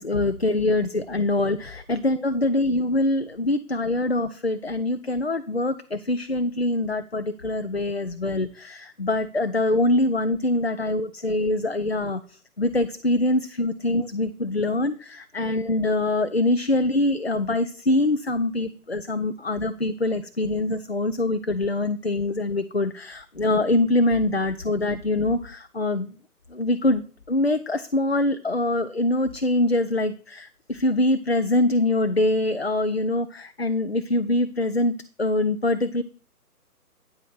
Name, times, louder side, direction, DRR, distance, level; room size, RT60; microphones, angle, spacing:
voice 1, 0.0-26.1 26.5-36.0, left 2 dB, 45° left, 11 dB, 0.4 m, -24 dB
9.1 x 5.0 x 5.5 m, 0.40 s
figure-of-eight pair, 150°, 46 cm